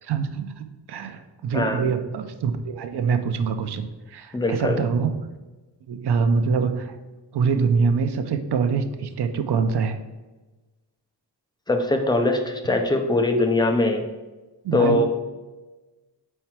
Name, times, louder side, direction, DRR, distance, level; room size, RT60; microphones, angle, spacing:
voice 1, 0.0-5.3 5.9-6.9 7.3-10.0 14.6-15.1, right 5 dB, 65° right, 8 dB, 0.7 m, -24 dB
voice 2, 1.5-1.9 4.3-4.8 11.7-14.0 14.7-15.1, left 2 dB, 10° left, 4 dB, 0.6 m, -21 dB
4.5 x 4.5 x 5.8 m, 1.2 s
wide cardioid pair, 160°, 43 cm